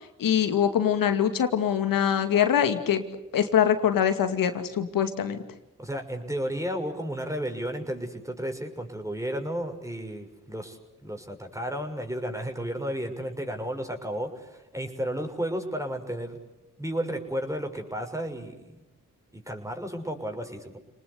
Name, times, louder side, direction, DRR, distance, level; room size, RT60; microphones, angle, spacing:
voice 1, 0.2-3.0 3.3-5.4, left 9 dB, 90° left, 8 dB, 2.5 m, -23 dB
voice 2, 5.8-16.4 16.8-18.7 19.3-20.8, equal, 10° right, 4 dB, 6.3 m, -33 dB
29.5 x 20.0 x 8.4 m, 0.95 s
cardioid pair, 50°, 33 cm